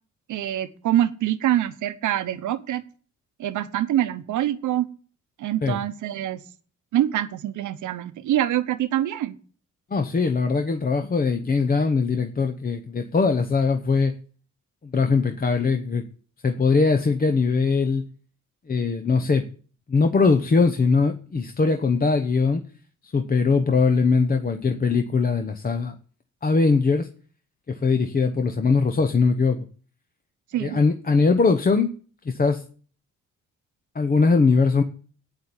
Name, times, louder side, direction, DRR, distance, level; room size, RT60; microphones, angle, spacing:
voice 1, 0.3-2.8 3.4-4.9 5.4-6.4 6.9-9.4 30.5-30.8, right 12 dB, 75° right, 11 dB, 1.0 m, -25 dB
voice 2, 9.9-14.1 14.8-16.0 16.4-18.0 18.7-19.4 19.9-22.6 23.0-25.9 26.4-27.1 27.7-29.7 30.6-31.9 32.2-32.6 33.9-34.8, left 4 dB, 30° left, 7 dB, 0.9 m, -21 dB
8.9 x 7.4 x 8.9 m, 0.43 s
cardioid pair, 90°, 30 cm